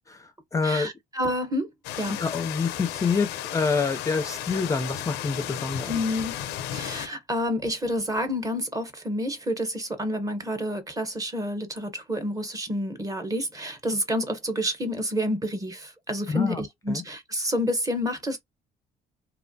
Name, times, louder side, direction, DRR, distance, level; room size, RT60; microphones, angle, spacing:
voice 1, 0.1-0.9 2.2-5.9 16.3-16.6 16.9-17.0, left 4 dB, 20° left, 0.4 m, -27 dB
voice 2, 0.6-1.7 2.0-2.2 5.9-6.3 6.7-18.4, equal, 20° right, 0.8 m, -29 dB
sound 1, 1.8-7.1, left 11 dB, 90° left, 0.5 m, -34 dB
2.9 x 2.0 x 2.6 m
cardioid pair, 110°, 17 cm